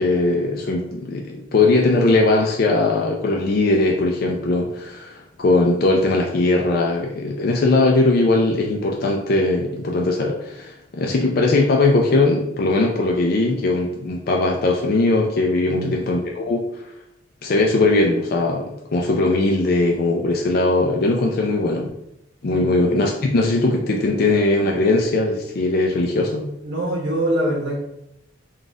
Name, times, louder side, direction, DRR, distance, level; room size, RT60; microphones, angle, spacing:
voice 1, 0.0-16.6 17.4-18.7 18.9-21.9 22.4-26.5, left 2 dB, 55° left, 0 dB, 0.4 m, -19 dB
voice 2, 15.7-16.0 22.5-22.7 26.6-27.8, right 1 dB, 80° right, -3 dB, 1.3 m, -24 dB
3.9 x 2.4 x 3.7 m, 0.81 s
head